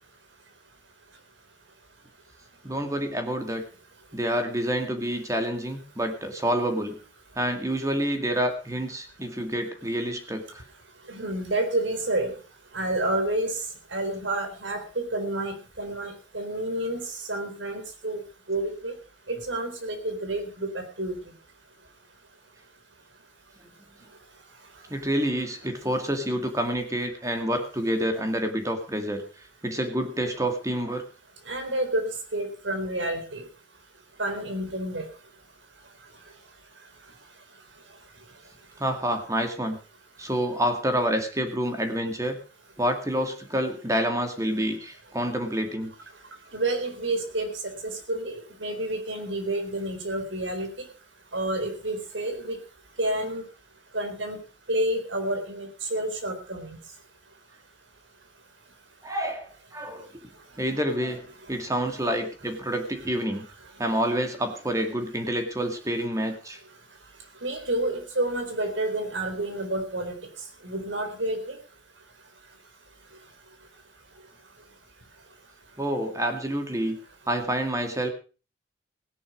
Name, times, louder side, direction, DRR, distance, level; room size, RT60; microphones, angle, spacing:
voice 1, 2.6-3.6 4.1-7.0 7.4-10.6 24.9-29.2 29.6-31.0 38.8-39.8 40.2-42.4 42.8-45.9 59.0-60.3 60.6-63.5 63.8-66.6 75.8-77.0 77.3-78.1, equal, 15° right, 5 dB, 2.2 m, -28 dB
voice 2, 11.1-12.3 12.7-13.6 13.9-18.2 18.5-18.9 19.3-21.2 31.5-32.1 32.3-33.4 34.2-35.0 46.5-50.7 51.3-52.6 53.0-53.4 53.9-54.4 54.7-56.8 67.4-70.1 70.6-71.6, right 1 dB, 85° right, 7 dB, 4.1 m, -29 dB
17.0 x 10.5 x 5.1 m, 0.36 s
head